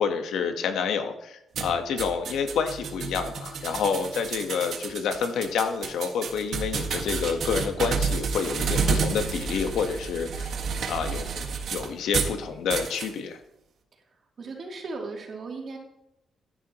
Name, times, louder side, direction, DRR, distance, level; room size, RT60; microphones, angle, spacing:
voice 1, 0.0-10.5 10.9-11.3 11.7-13.4, left 6 dB, 80° left, 7 dB, 1.2 m, -28 dB
sound 1, 1.5-12.4 12.7-13.1, right 5 dB, 60° right, 1.5 m, -30 dB
voice 2, 13.9-15.8, right 3 dB, 45° right, -1 dB, 2.9 m, -37 dB
14.5 x 10.0 x 3.0 m, 0.85 s
cardioid pair, 140°, 0 cm